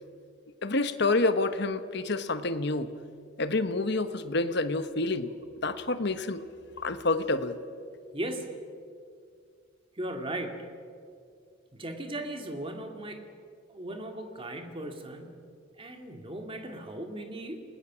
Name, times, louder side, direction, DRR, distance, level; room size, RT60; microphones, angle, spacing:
voice 1, 0.6-2.9 3.4-5.3 5.6-6.4 6.8-7.6, left 2 dB, 60° left, 10 dB, 1.1 m, -28 dB
voice 2, 8.1-8.5 9.9-10.6 11.7-13.2 13.7-15.5 15.8-17.6, right 1 dB, 25° right, 4 dB, 2.3 m, -37 dB
28.5 x 20.5 x 6.2 m, 2.3 s
head